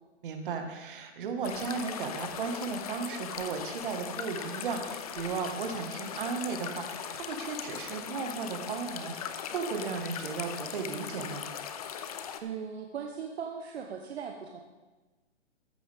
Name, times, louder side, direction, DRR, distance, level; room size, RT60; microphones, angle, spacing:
voice 1, 0.2-11.5, right 5 dB, 45° right, 4 dB, 1.7 m, -35 dB
sound 1, 1.4-12.4, left 8 dB, 35° left, 0.6 m, -39 dB
voice 2, 12.4-14.6, right 7 dB, 60° right, 2 dB, 1.2 m, -38 dB
14.0 x 9.1 x 3.6 m, 1.2 s
hypercardioid pair, 150°, 35 cm